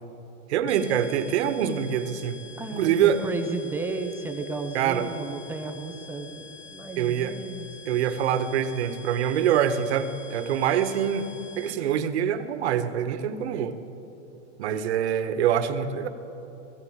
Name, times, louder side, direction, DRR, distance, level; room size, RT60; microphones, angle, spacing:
voice 1, 0.5-2.4 2.7-3.2 4.7-5.1 7.0-7.4 7.9-11.3 11.6-13.8 14.6-16.1, right 9 dB, 65° right, 9 dB, 1.6 m, -25 dB
sound 1, 0.7-12.1, left 5 dB, 90° left, 1.5 m, -46 dB
voice 2, 2.6-7.7, right 3 dB, 5° right, 5 dB, 0.6 m, -34 dB
20.0 x 15.5 x 8.9 m, 3.0 s
supercardioid pair, 165°, 36 cm